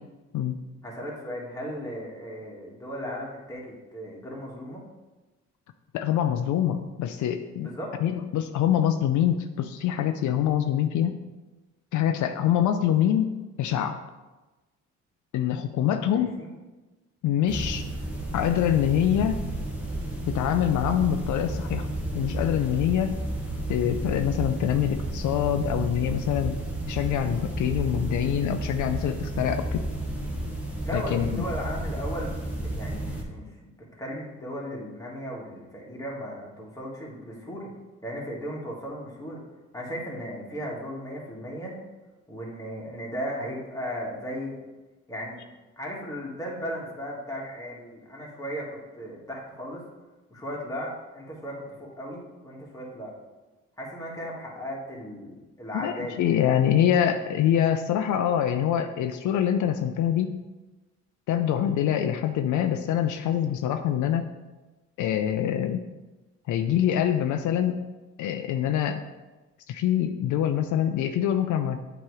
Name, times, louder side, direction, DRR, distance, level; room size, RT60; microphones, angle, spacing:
voice 1, 0.8-4.8 7.6-7.9 16.0-16.5 30.8-33.7 34.0-37.7 38.0-39.4 39.7-41.7 42.3-44.6 45.1-45.4 45.8-48.7 48.9-49.8 50.3-53.1 53.8-56.2, equal, 10° left, -4 dB, 1.8 m, -36 dB
voice 2, 5.9-7.7 8.0-11.1 11.9-14.0 15.3-16.4 17.2-17.8 18.3-19.5 20.3-21.9 22.1-23.2 23.7-26.5 26.9-29.8 30.9-31.4 55.7-60.3 61.3-64.3 65.0-65.8 66.5-67.8 68.2-69.0 69.7-71.8, left 10 dB, 75° left, 7 dB, 0.5 m, -25 dB
sound 1, 17.5-33.2, right 1 dB, 5° right, 1.3 m, -32 dB
7.5 x 3.0 x 4.8 m, 1.2 s
cardioid pair, 90°, 30 cm